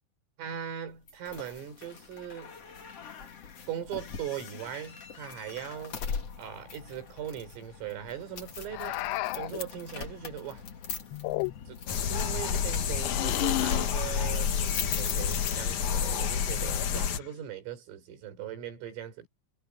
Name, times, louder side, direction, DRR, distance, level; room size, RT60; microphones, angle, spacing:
voice 1, 0.4-2.6 3.7-6.1 6.4-9.0 9.3-10.7 11.7-19.3, right 10 dB, 80° right, 7.4 m, -40 dB
sound 1, 1.1-16.0, left 6 dB, 45° left, 2.2 m, -42 dB
sound 2, 8.7-9.6 11.1-11.9 13.0-14.0 15.2-15.6 16.6-17.3, left 18 dB, 80° left, 2.6 m, -33 dB
sound 3, 11.9-17.2, left 7 dB, 65° left, 1.9 m, -29 dB
omnidirectional pair, 5.8 m